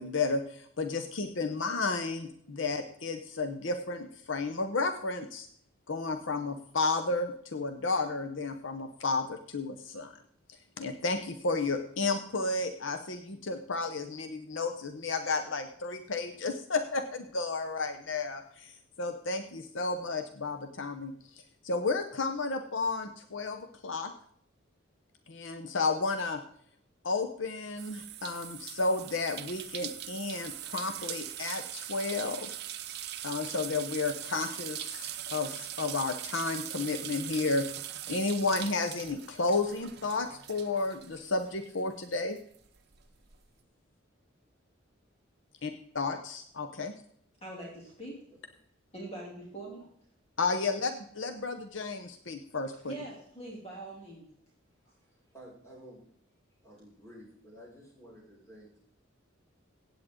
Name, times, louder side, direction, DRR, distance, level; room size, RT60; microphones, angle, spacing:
voice 1, 0.0-5.5 5.9-10.1 10.8-18.7 19.0-24.1 25.3-26.4 27.0-32.5 33.2-37.6 38.1-42.4 45.6-46.9 50.4-52.9, left 3 dB, 70° left, 7 dB, 0.9 m, -32 dB
sound 1, 27.8-41.8 42.1-43.4, right 12 dB, 55° right, 0.9 m, -41 dB
voice 2, 47.4-48.2 48.9-49.9 52.8-54.2, right 2 dB, 30° left, -3 dB, 2.9 m, -43 dB
voice 3, 55.0-56.0 56.6-58.8, equal, 15° left, -5 dB, 6.0 m, -52 dB
15.5 x 8.7 x 3.8 m, 0.63 s
head